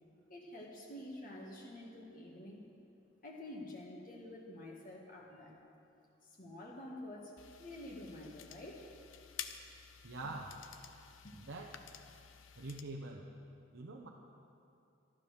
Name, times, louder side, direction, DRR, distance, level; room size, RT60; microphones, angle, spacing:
voice 1, 0.3-2.7 3.2-5.6 6.2-7.3 7.6-8.9 10.2-10.3 11.2-11.4, left 1 dB, 45° left, -3 dB, 1.8 m, -48 dB
sound 1, 7.4-12.8, left 8 dB, 85° left, 0.8 m, -51 dB
voice 2, 10.0-10.6 11.4-11.8 12.6-13.3 13.7-14.1, right 2 dB, 75° right, -1 dB, 1.0 m, -45 dB
12.5 x 12.5 x 6.5 m, 2.6 s
head